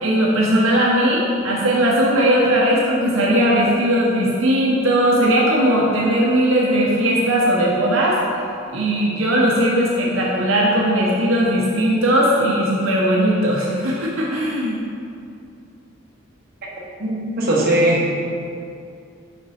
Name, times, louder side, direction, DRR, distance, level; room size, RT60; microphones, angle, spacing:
voice 1, 0.0-8.2 8.7-14.8, right 1 dB, 75° right, -4 dB, 0.9 m, -18 dB
voice 2, 17.0-18.1, right 1 dB, 45° right, -5 dB, 1.2 m, -19 dB
5.8 x 5.3 x 4.2 m, 2.5 s
head